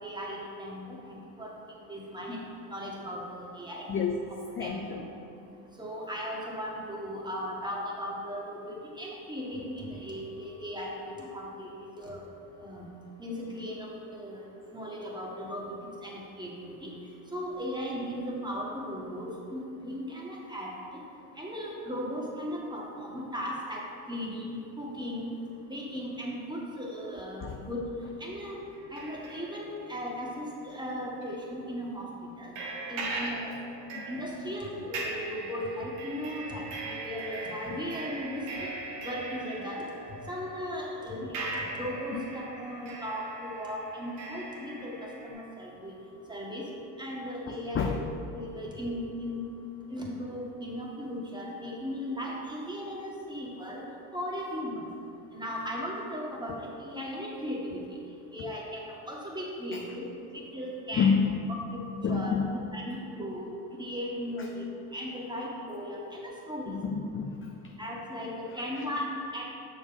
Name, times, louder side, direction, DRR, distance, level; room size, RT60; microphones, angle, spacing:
voice 1, 0.0-3.9 4.6-5.0 5.8-12.2 12.6-12.9 13.2-15.7 16.0-16.9 17.3-20.7 21.3-25.3 25.7-27.8 28.2-28.6 28.9-32.1 32.4-32.5 32.9-33.6 34.1-38.7 39.0-39.8 40.2-41.5 41.7-45.9 46.3-46.7 47.0-48.0 48.3-49.5 49.9-53.8 54.1-54.9 55.3-57.8 58.3-60.1 60.3-61.1 62.1-62.3 62.7-64.6 64.9-66.8 67.8-69.4, equal, 10° right, -3 dB, 1.7 m, -37 dB
voice 2, 4.6-5.0 27.4-27.6 33.9-34.1 42.1-42.3 47.5-48.0 60.9-61.5 62.0-62.7 66.7-67.8 68.5-68.8, left 5 dB, 25° left, 2 dB, 0.5 m, -29 dB
sound 1, 28.7-30.8 31.2-31.4 32.6-45.3, right 2 dB, 70° right, 1.8 m, -40 dB
6.2 x 5.2 x 5.2 m, 2.5 s
supercardioid pair, 85°, 49 cm